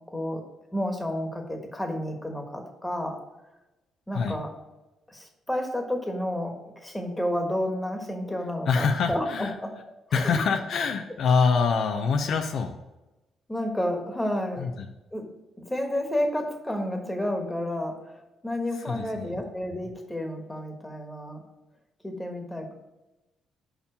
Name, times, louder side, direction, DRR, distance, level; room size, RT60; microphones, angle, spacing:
voice 1, 0.1-0.4 0.7-3.2 4.1-4.5 5.1-9.7 10.1-10.4 13.5-14.7 15.1-15.2 15.6-21.4 22.0-22.7, left 1 dB, 10° left, 3 dB, 1.4 m, -31 dB
voice 2, 8.7-9.5 10.1-12.7 14.6-14.9 18.8-19.4, left 5 dB, 65° left, 5 dB, 0.6 m, -25 dB
5.4 x 4.8 x 6.5 m, 1.0 s
cardioid pair, 90°, 0 cm